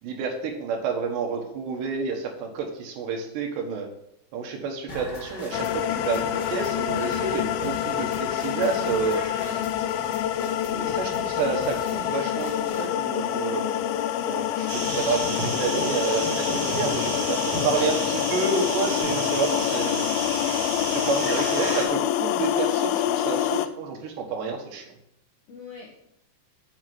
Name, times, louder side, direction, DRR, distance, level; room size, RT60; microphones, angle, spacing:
voice 1, 0.0-3.9 4.3-9.2 10.7-13.7 14.3-20.1 20.9-24.9, right 4 dB, 80° right, 3 dB, 3.5 m, -29 dB
sound 1, 4.9-12.9, left 1 dB, 30° left, 2.4 m, -41 dB
sound 2, 5.5-23.7, left 11 dB, 90° left, 2.1 m, -27 dB
voice 2, 9.4-10.9 25.5-26.1, left 6 dB, 65° left, -3 dB, 1.6 m, -43 dB
sound 3, 14.7-21.8, right 1 dB, 30° right, 4.1 m, -31 dB
7.4 x 6.2 x 7.6 m, 0.76 s
omnidirectional pair, 4.9 m